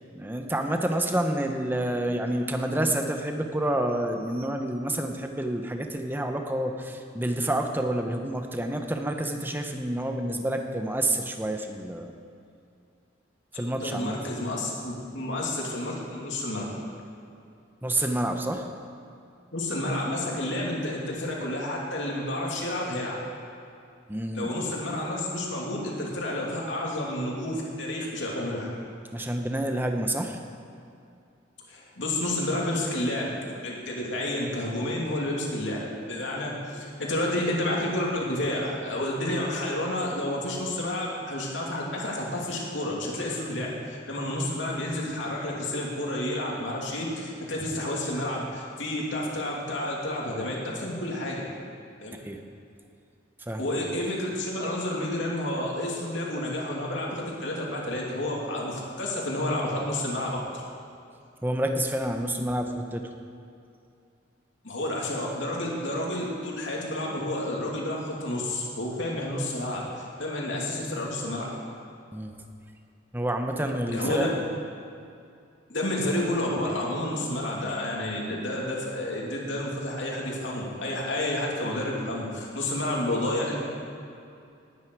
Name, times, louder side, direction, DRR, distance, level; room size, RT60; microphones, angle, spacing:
voice 1, 0.1-12.1 13.5-14.2 17.8-18.6 24.1-24.5 29.1-30.4 52.3-52.4 53.5-53.6 61.4-63.0 72.1-72.3 73.1-74.3, right 1 dB, 10° right, 4 dB, 0.9 m, -28 dB
voice 2, 13.8-16.6 19.5-23.1 24.3-28.7 31.7-33.4 33.6-35.8 36.1-51.4 52.0-52.2 53.6-60.4 64.6-69.8 70.2-71.5 73.9-74.3 75.7-83.6, left 1 dB, 65° left, -3 dB, 2.7 m, -30 dB
19.0 x 9.6 x 4.7 m, 2.5 s
head